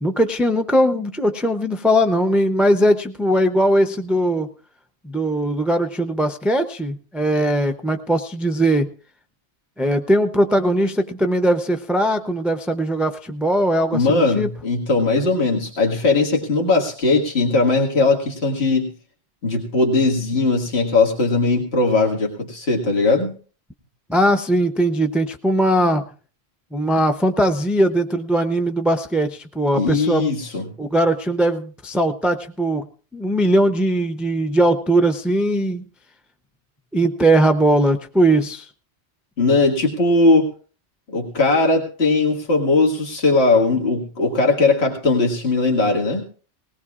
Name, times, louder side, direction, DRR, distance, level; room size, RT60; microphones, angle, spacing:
voice 1, 0.0-4.5 5.0-8.9 9.8-14.5 24.1-26.0 26.7-30.3 30.8-32.9 33.1-35.8 36.9-38.7, right 1 dB, ahead, 6 dB, 0.4 m, -19 dB
voice 2, 13.9-18.9 19.4-23.3 29.8-30.6 39.4-40.5 41.1-46.2, left 3 dB, 65° left, -1 dB, 2.1 m, -19 dB
19.5 x 17.5 x 2.4 m, 0.40 s
omnidirectional pair, 1.2 m